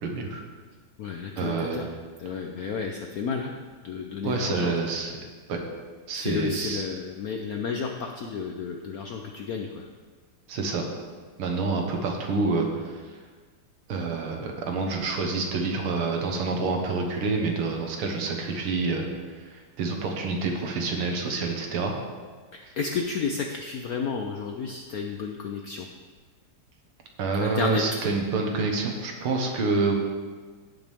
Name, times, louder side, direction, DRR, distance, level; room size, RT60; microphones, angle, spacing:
voice 1, 0.0-0.4 1.4-1.8 4.2-5.1 5.5-5.6 6.1-6.9 10.5-10.9 11.4-13.2 13.9-19.1 19.5-22.0 27.2-29.9, right 3 dB, 80° right, 2 dB, 2.1 m, -27 dB
voice 2, 1.0-1.9 2.2-3.5 3.8-4.8 6.1-9.9 22.5-25.9 27.4-27.8, left 5 dB, 85° left, 3 dB, 0.8 m, -32 dB
17.0 x 6.0 x 3.5 m, 1.5 s
omnidirectional pair, 2.3 m